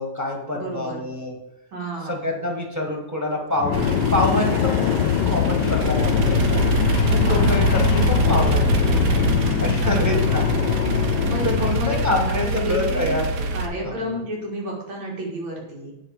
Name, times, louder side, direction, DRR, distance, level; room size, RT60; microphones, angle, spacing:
voice 1, 0.0-1.3 2.0-4.9 5.2-6.6 7.0-9.0 9.6-10.7 11.4-13.2 13.8-14.2, left 1 dB, 10° right, 1 dB, 1.1 m, -26 dB
voice 2, 0.5-1.0 1.7-2.4 7.2-7.5 9.8-10.3 11.2-13.2 13.5-15.9, right 1 dB, 85° right, -2 dB, 3.0 m, -31 dB
sound 1, 3.6-12.6, left 10 dB, 75° left, 1.1 m, -23 dB
Industrial Forklift Stall Then turn over, 3.7-13.7, right 3 dB, 65° right, 1.3 m, -24 dB
8.8 x 6.1 x 4.9 m, 0.92 s
omnidirectional pair, 2.1 m